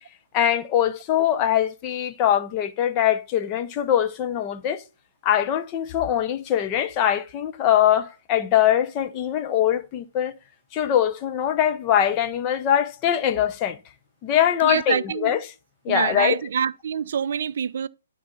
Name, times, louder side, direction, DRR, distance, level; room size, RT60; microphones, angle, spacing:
voice 1, 0.3-4.8 5.2-10.4 10.7-13.8 14.2-15.5 15.8-16.4, left 10 dB, 25° left, 0.8 m, -22 dB
voice 2, 14.6-15.3 15.9-17.9, right 8 dB, 50° right, 0.5 m, -26 dB
12.0 x 4.0 x 5.7 m
figure-of-eight pair, 125°, 0 cm